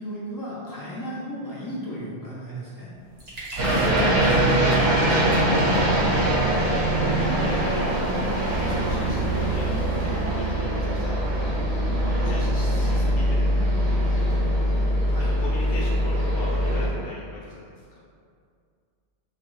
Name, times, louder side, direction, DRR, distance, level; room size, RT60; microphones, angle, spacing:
voice 1, 0.0-2.9 15.1-15.3, equal, 30° left, -8 dB, 0.4 m, -35 dB
sound 1, 2.9-10.5, equal, 55° right, 0.9 m, -38 dB
voice 2, 3.6-5.0 7.0-7.9 8.6-11.2 12.2-14.0 15.2-18.1, left 1 dB, 65° left, -7 dB, 1.0 m, -37 dB
sound 2, 3.6-16.9, right 1 dB, 85° right, 0.9 m, -22 dB
2.5 x 2.4 x 3.0 m, 2.2 s
omnidirectional pair, 1.1 m